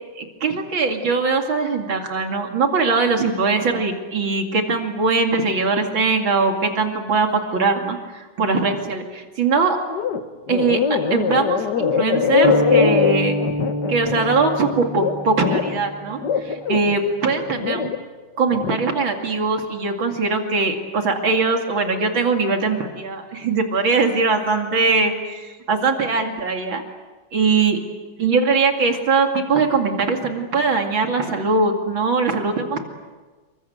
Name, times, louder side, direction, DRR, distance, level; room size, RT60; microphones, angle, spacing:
voice 1, 0.2-9.8 10.5-13.3 13.9-17.9 18.4-26.8 27.3-27.8 28.2-32.8, right 4 dB, 80° right, 4 dB, 3.2 m, -21 dB
sound 1, 9.9-10.2 10.5-15.8 16.2-18.0 18.4-18.8, left 7 dB, 60° left, 1.9 m, -22 dB
sound 2, 12.4-16.4, left 1 dB, 20° left, 1.1 m, -25 dB
27.5 x 24.0 x 8.0 m, 1.3 s
omnidirectional pair, 2.1 m